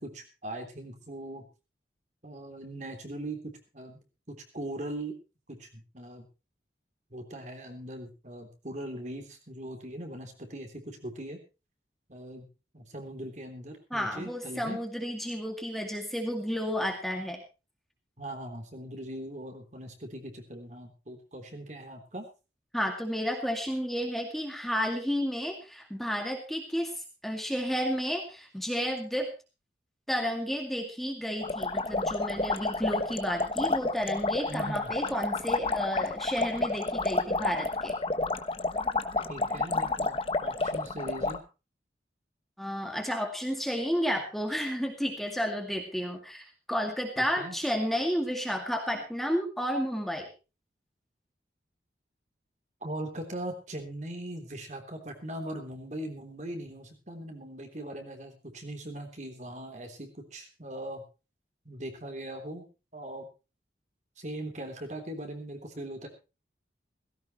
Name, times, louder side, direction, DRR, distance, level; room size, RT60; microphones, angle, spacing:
voice 1, 0.0-1.4 2.2-3.4 3.7-4.0 4.3-5.2 5.5-6.3 7.1-11.4 12.1-12.5 12.7-14.8 18.2-22.3 34.5-34.9 39.3-41.4 47.2-47.6 52.8-61.0 61.7-62.7 62.9-63.3 64.2-66.1, right 1 dB, 40° right, 4 dB, 3.4 m, -40 dB
voice 2, 13.9-17.4 22.7-29.3 30.1-38.0 42.6-50.3, equal, ahead, 2 dB, 2.3 m, -31 dB
sound 1, 31.4-41.4, left 3 dB, 30° left, 1.1 m, -30 dB
17.0 x 16.5 x 3.1 m, 0.31 s
head